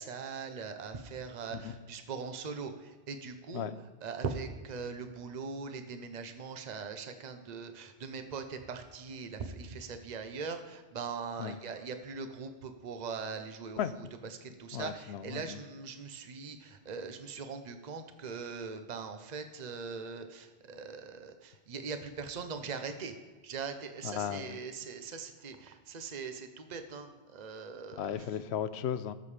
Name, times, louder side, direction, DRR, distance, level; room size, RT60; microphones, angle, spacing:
voice 1, 0.0-3.7 4.0-23.1 23.4-28.3, right 5 dB, 40° right, 0.9 m, -41 dB
voice 2, 14.7-15.6 24.0-24.6 28.0-29.1, left 9 dB, 70° left, 0.9 m, -35 dB
18.5 x 7.4 x 3.3 m
omnidirectional pair, 1.2 m